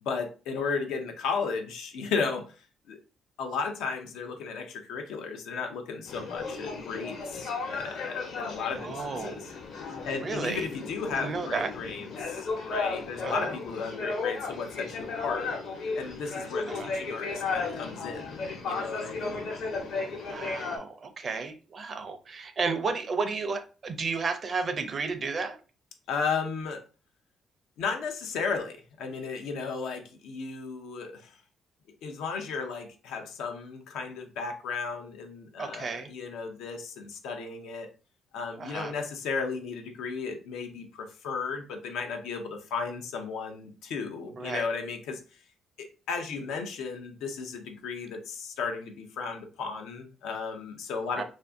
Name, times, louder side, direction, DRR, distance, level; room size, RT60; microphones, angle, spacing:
voice 1, 0.0-2.6 2.9-3.0 3.4-9.5 10.0-15.5 16.0-19.4 26.1-26.8 27.8-31.4 32.0-37.9 38.3-45.2 45.8-51.2, left 5 dB, 85° left, 4 dB, 0.6 m, -34 dB
sound 1, 6.1-20.8, left 4 dB, 70° left, 1.0 m, -35 dB
voice 2, 8.8-9.4 10.2-10.7 11.1-11.7 13.2-13.5 16.7-16.9 20.2-25.6 35.6-36.1 38.6-38.9 44.3-44.6 51.2-51.3, right 4 dB, 45° right, 9 dB, 0.5 m, -32 dB
2.6 x 2.4 x 3.5 m, 0.35 s
cardioid pair, 90°, 0 cm